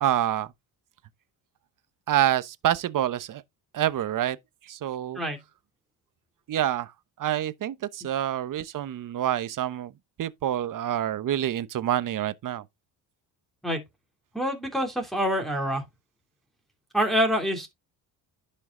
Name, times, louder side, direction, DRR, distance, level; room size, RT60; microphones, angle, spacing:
voice 1, 0.0-0.5 2.1-3.4 3.7-4.4 4.7-5.2 6.5-6.9 7.2-9.9 10.2-12.6, right 12 dB, 50° right, 1.0 m, -27 dB
voice 2, 14.3-15.8 16.9-17.7, equal, ahead, 2.9 m, -26 dB
11.0 x 5.6 x 3.8 m
cardioid pair, 110°, 40 cm